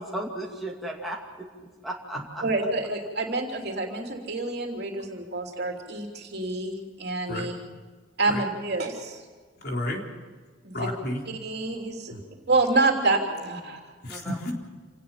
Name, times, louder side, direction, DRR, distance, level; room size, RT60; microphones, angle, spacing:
voice 1, 0.0-2.4 14.1-14.4, right 1 dB, ahead, -4 dB, 2.4 m, -35 dB
voice 2, 2.4-7.5 8.2-9.2 10.6-10.9 11.3-12.1 12.5-13.8, right 3 dB, 50° right, 1 dB, 3.2 m, -27 dB
voice 3, 9.6-10.0 10.7-11.2 12.1-12.2 14.0-14.5, left 1 dB, 50° left, 0 dB, 3.9 m, -31 dB
27.5 x 18.5 x 5.8 m, 1.5 s
head